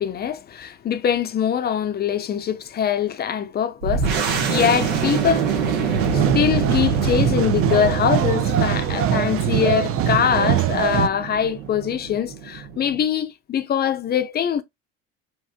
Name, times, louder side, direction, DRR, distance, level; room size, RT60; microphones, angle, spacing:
voice 1, 0.0-5.5 6.1-14.6, left 8 dB, 30° left, 0.5 m, -23 dB
sound 1, 3.8-13.0, right 5 dB, 85° right, 1.0 m, -25 dB
sound 2, 6.0-11.1, right 9 dB, 45° right, 0.5 m, -22 dB
2.9 x 2.5 x 2.4 m
supercardioid pair, 80°, 31 cm